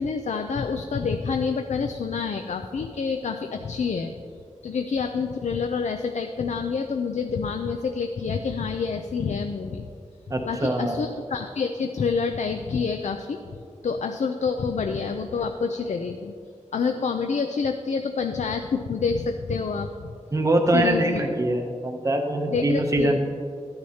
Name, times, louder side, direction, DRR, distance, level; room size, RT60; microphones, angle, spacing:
voice 1, 0.0-4.1 4.6-9.9 10.5-13.4 13.8-16.3 16.7-20.1 20.7-21.2 22.5-23.2, left 5 dB, 70° left, 5 dB, 0.4 m, -27 dB
voice 2, 10.3-11.0 20.3-23.2, right 1 dB, 25° right, 3 dB, 0.7 m, -23 dB
12.0 x 9.6 x 2.8 m, 2.4 s
wide cardioid pair, 110°, 13 cm